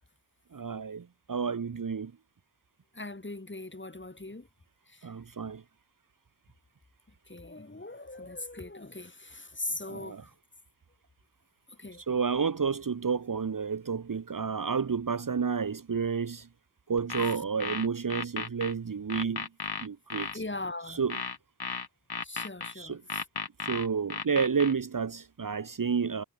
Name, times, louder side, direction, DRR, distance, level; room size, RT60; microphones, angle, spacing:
voice 1, 0.5-2.1 5.0-5.6 9.9-10.2 12.1-16.5 16.9-19.5 19.8-20.3 21.0-21.1 22.8-23.0 23.7-26.2, right 6 dB, 45° right, 1.3 m, -30 dB
voice 2, 2.9-4.5 4.9-5.1 7.3-10.3 11.7-12.0 17.4-17.5 20.3-21.0 22.2-23.3, left 2 dB, 25° left, 5.4 m, -40 dB
sound 1, 17.0-18.7 19.1-20.4 21.1-22.7 23.1-24.7, left 5 dB, 55° left, 4.9 m, -35 dB
cardioid pair, 50°, 44 cm